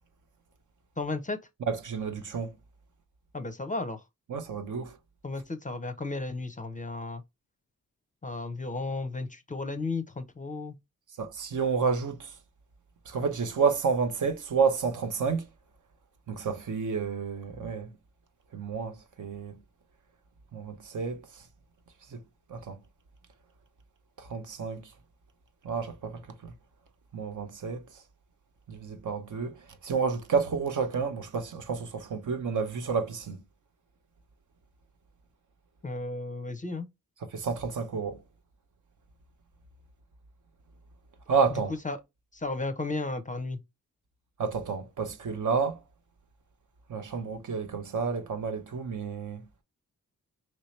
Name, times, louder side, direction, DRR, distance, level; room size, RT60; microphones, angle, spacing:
voice 1, 1.0-1.4 3.3-4.0 5.2-7.2 8.2-10.8 35.8-36.9 41.8-42.0 42.3-43.6, left 3 dB, 20° left, 0.6 m, -34 dB
voice 2, 1.7-2.6 4.3-4.9 11.2-12.3 13.1-15.5 16.3-17.9 18.5-19.5 20.5-21.2 22.1-22.2 22.5-22.8 24.2-24.9 25.6-26.5 27.1-27.8 28.7-29.6 29.8-33.4 37.2-38.2 41.3-41.7 44.4-45.8 46.9-49.4, right 5 dB, 60° right, 0.8 m, -30 dB
3.1 x 2.8 x 3.1 m
cardioid pair, 45°, 35 cm